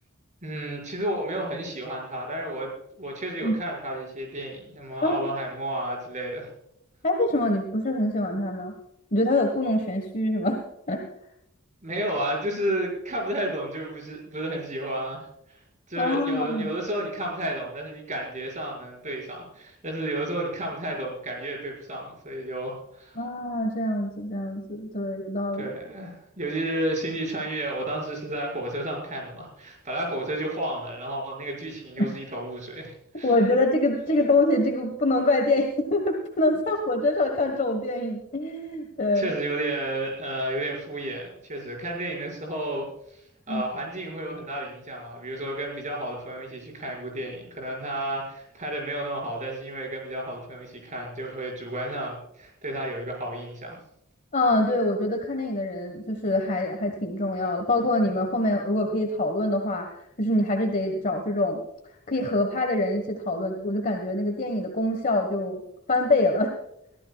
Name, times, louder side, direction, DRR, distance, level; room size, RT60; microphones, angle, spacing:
voice 1, 0.4-2.7 3.0-6.5 11.8-15.6 15.9-23.2 25.6-33.3 39.1-42.9 43.1-53.8, right 1 dB, 35° right, -1 dB, 5.7 m, -32 dB
voice 2, 7.0-8.7 9.1-10.6 10.9-11.0 16.0-16.7 23.1-25.7 32.0-32.1 33.2-39.3 43.5-43.6 54.3-61.6 62.1-65.6 65.9-66.5, left 1 dB, 40° left, 4 dB, 1.5 m, -25 dB
23.5 x 15.0 x 2.4 m, 0.78 s
head